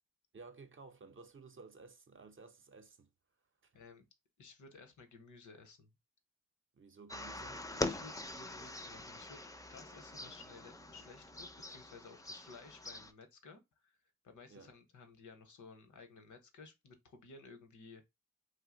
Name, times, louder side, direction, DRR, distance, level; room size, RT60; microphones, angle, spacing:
voice 1, 0.3-3.1 3.6-3.8 6.7-7.7 14.5-14.7, right 4 dB, 40° right, 0.7 m, -55 dB
voice 2, 3.7-4.0 4.4-6.0 7.7-14.0 14.2-18.0, left 4 dB, 70° left, 0.9 m, -56 dB
sound 1, 7.1-13.1, left 2 dB, 10° left, 0.6 m, -43 dB
2.7 x 2.2 x 3.7 m
supercardioid pair, 45°, 31 cm